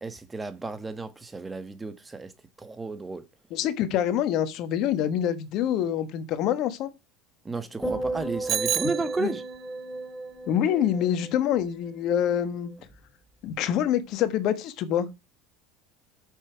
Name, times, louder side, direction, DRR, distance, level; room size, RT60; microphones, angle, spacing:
voice 1, 0.0-2.3 2.6-3.2 7.4-9.4, right 3 dB, 15° right, 1.4 m, -33 dB
voice 2, 3.5-6.9 9.2-9.3 10.5-12.7 13.4-15.1, left 10 dB, 60° left, 1.4 m, -26 dB
sound 1, 7.8-12.2 12.5-12.9, right 2 dB, ahead, 2.0 m, -35 dB
Bicycle bell, 8.5-9.7, right 9 dB, 40° right, 0.4 m, -30 dB
8.6 x 6.6 x 4.7 m
hypercardioid pair, 85°, 0 cm